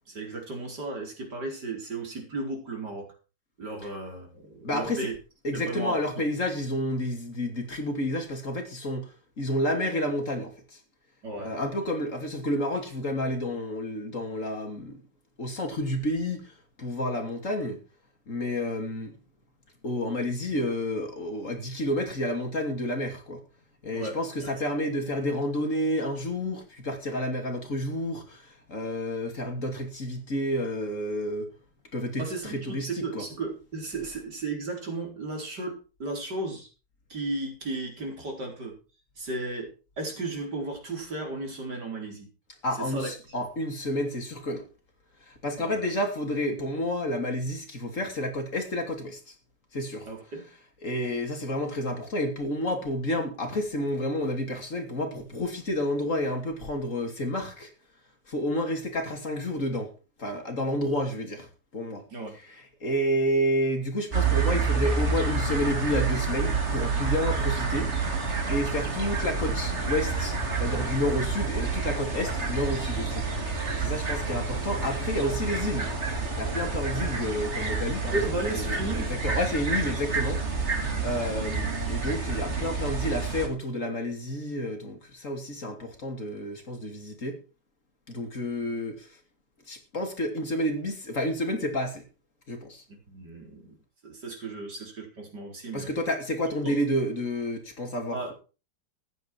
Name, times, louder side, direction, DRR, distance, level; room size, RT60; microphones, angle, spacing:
voice 1, 0.1-3.1 3.6-5.1 5.5-6.2 11.2-11.6 23.9-24.5 32.2-36.7 37.1-38.8 39.2-42.3 42.8-43.1 45.6-45.9 50.1-50.4 62.1-62.3 78.1-79.1 92.9-93.8 94.0-95.9 96.6-96.8 98.1-98.3, right 2 dB, 60° right, 5.0 m, -35 dB
voice 2, 4.6-5.1 5.4-10.8 11.4-15.0 15.4-17.8 18.3-19.1 19.8-23.4 23.8-31.5 31.9-33.2 42.6-44.6 45.3-49.3 49.7-50.1 50.8-57.7 58.3-59.9 60.2-61.5 61.7-62.0 62.8-67.9 68.5-73.3 73.8-75.9 76.4-78.2 78.5-80.4 81.0-87.4 88.1-89.1 89.7-92.0 92.5-92.8 95.7-98.3, left 1 dB, 40° left, 3.2 m, -30 dB
sound 1, 64.1-83.5, right 4 dB, 35° right, 2.8 m, -28 dB
14.5 x 11.0 x 4.7 m
omnidirectional pair, 2.0 m